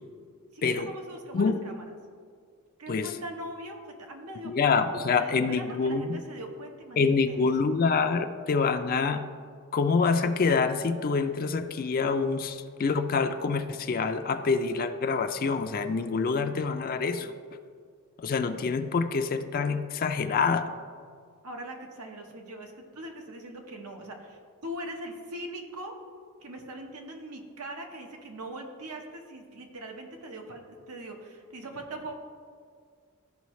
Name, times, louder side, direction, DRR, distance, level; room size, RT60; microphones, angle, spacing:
voice 1, 0.5-1.8 2.8-4.8 5.2-7.4 21.4-25.9 26.4-32.1, right 1 dB, 85° right, 3 dB, 1.1 m, -41 dB
voice 2, 4.4-6.2 7.0-9.2 9.7-17.3 18.2-20.7, left 4 dB, 40° left, 8 dB, 0.4 m, -26 dB
14.0 x 5.5 x 3.1 m, 2.1 s
head